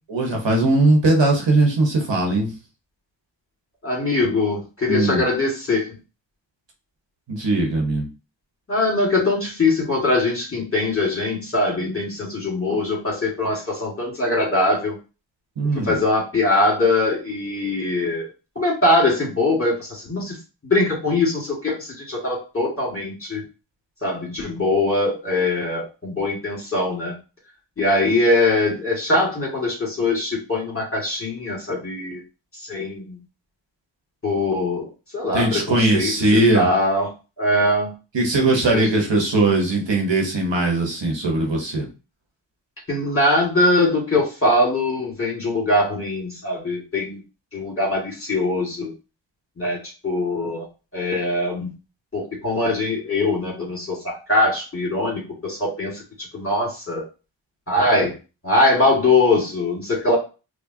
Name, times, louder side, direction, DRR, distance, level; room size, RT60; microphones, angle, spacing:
voice 1, 0.1-2.5 4.9-5.2 7.3-8.1 15.6-16.0 35.3-36.7 38.1-41.9, right 2 dB, 65° right, 0 dB, 1.1 m, -19 dB
voice 2, 3.8-5.9 8.7-14.9 15.8-18.3 18.6-20.4 20.6-23.4 24.0-27.1 27.8-32.2 32.7-33.2 34.2-34.9 35.1-37.1 37.4-37.9 38.7-39.0 42.9-47.2 47.5-48.9 49.6-49.8 50.0-50.7 50.9-51.7 52.1-56.0 56.3-57.0 57.7-58.1 58.4-60.2, left 2 dB, 30° left, -3 dB, 1.8 m, -22 dB
4.7 x 2.2 x 2.7 m, 0.32 s
cardioid pair, 50°, 46 cm